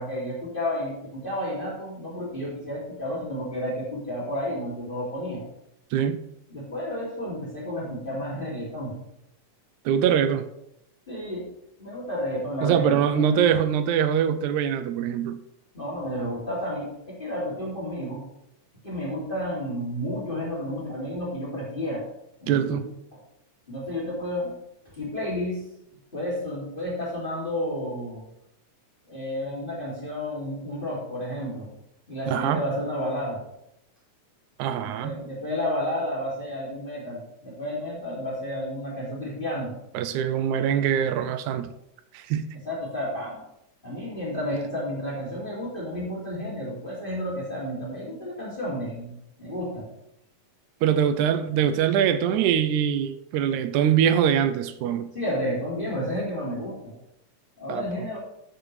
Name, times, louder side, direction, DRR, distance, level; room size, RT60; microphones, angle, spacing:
voice 1, 0.0-5.4 6.5-9.0 11.1-11.5 11.8-13.4 15.7-18.2 18.8-22.0 22.4-22.8 23.7-24.5 24.9-25.6 26.1-28.2 29.1-31.7 32.1-33.4 34.8-39.7 42.6-43.4 43.8-49.9 55.1-56.9 57.6-58.2, left 1 dB, 15° left, -5 dB, 2.6 m, -31 dB
voice 2, 5.9-6.2 9.9-10.5 12.6-15.4 22.5-22.8 32.3-32.6 34.6-35.2 39.9-41.7 42.1-42.6 50.8-55.1 57.7-57.9, right 9 dB, 85° right, 11 dB, 2.0 m, -23 dB
13.5 x 6.9 x 3.3 m, 0.80 s
omnidirectional pair, 3.4 m